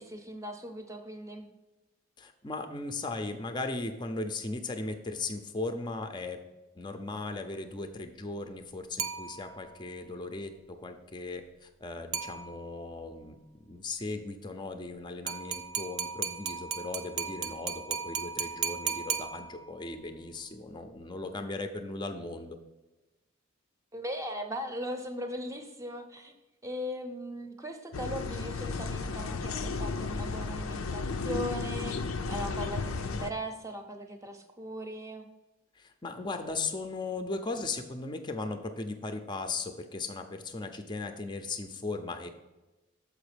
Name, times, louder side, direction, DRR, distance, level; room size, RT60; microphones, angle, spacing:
voice 1, 0.0-1.5 23.9-26.4 26.6-35.3, equal, 15° right, 6 dB, 0.7 m, -39 dB
voice 2, 2.2-6.4 6.7-22.6 35.7-42.3, left 3 dB, 20° left, 7 dB, 0.5 m, -37 dB
sound 1, 9.0-9.8 12.1-12.9 15.3-19.9, right 7 dB, 75° right, 0.6 m, -36 dB
sound 2, 27.9-33.3, left 4 dB, 90° left, 0.5 m, -34 dB
7.0 x 5.0 x 5.0 m, 1.1 s
head